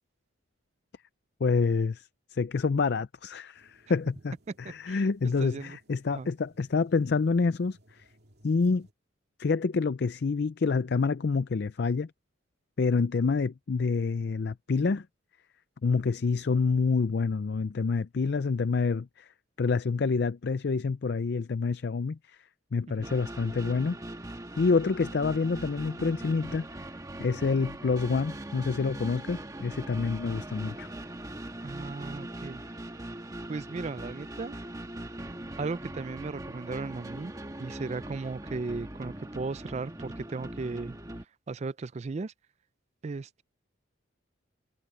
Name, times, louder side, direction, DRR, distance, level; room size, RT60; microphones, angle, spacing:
voice 1, 1.4-7.8 8.4-8.9 9.4-12.1 12.8-15.1 15.8-19.3 19.6-22.4 22.7-24.0 24.6-26.7 27.2-30.9, left 4 dB, 55° left, 0.4 m, -27 dB
sound 1, 3.5-8.9, equal, 55° right, 2.7 m, -62 dB
voice 2, 4.6-5.0 5.4-5.8 6.1-6.3 23.0-23.1 31.6-32.6 33.5-34.6 35.6-37.3 37.6-41.0 41.5-42.3 43.0-43.4, right 3 dB, 35° right, 0.4 m, -36 dB
sound 2, 23.0-41.2, right 1 dB, 20° right, 1.5 m, -41 dB
open air
head